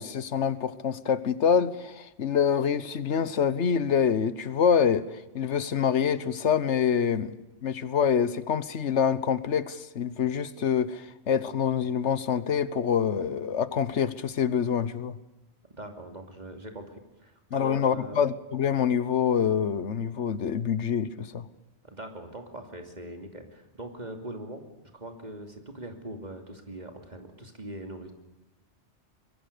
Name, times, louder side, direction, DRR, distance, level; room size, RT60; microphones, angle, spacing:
voice 1, 0.0-15.2 17.5-21.4, left 7 dB, 85° left, 16 dB, 1.4 m, -26 dB
voice 2, 15.7-18.2 21.8-24.7 24.9-28.1, right 1 dB, 40° right, 5 dB, 3.0 m, -41 dB
24.5 x 21.5 x 6.8 m, 1.0 s
omnidirectional pair, 1.2 m